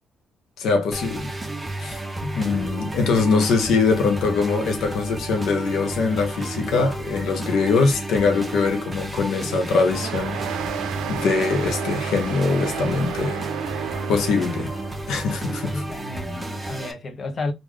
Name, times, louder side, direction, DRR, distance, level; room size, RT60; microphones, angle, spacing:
voice 1, 0.6-1.3 1.8-2.0 2.4-10.4 11.1-13.4 14.1-14.7 15.1-15.8, left 4 dB, 75° left, 0.7 m, -22 dB
sound 1, 0.9-16.9, right 2 dB, 15° right, 0.8 m, -32 dB
voice 2, 2.2-2.7 15.6-17.5, left 2 dB, 45° left, 0.8 m, -32 dB
sound 2, 9.9-15.0, right 8 dB, 90° right, 0.5 m, -31 dB
3.1 x 2.5 x 3.6 m
cardioid pair, 90°, 0 cm